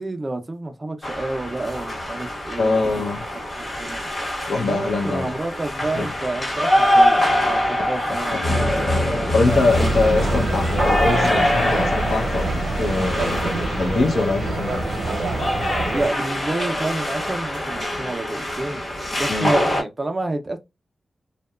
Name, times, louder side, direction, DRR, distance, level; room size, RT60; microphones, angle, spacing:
voice 1, 0.0-3.1 3.3-4.0 4.5-10.4 15.8-20.6, right 2 dB, 25° right, 0.4 m, -30 dB
sound 1, 1.0-19.8, left 1 dB, 35° left, 1.1 m, -24 dB
voice 2, 2.6-3.2 4.5-5.4 5.9-6.1 8.3-8.4 9.3-14.8 19.3-19.5, left 3 dB, 65° left, 0.6 m, -23 dB
sound 2, 9.4-16.1, right 2 dB, 65° right, 0.7 m, -26 dB
2.7 x 2.2 x 2.2 m
wide cardioid pair, 155°, 0 cm